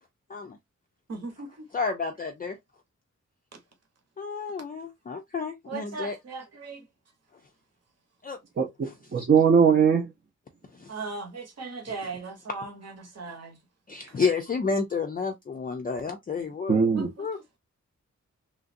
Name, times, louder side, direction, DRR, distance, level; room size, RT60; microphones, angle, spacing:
voice 1, 1.1-1.7 5.7-6.9 10.9-13.6 16.9-17.3, right 3 dB, 60° right, 1.0 m, -38 dB
voice 2, 1.7-2.6 4.2-6.2 8.2-8.4 8.8-8.9 10.7-11.0 13.9-16.8 17.2-17.6, left 5 dB, 30° left, 0.4 m, -30 dB
voice 3, 8.6-10.1 16.7-17.1, right 6 dB, 40° right, 0.6 m, -21 dB
3.1 x 2.5 x 2.5 m
wide cardioid pair, 145°, 29 cm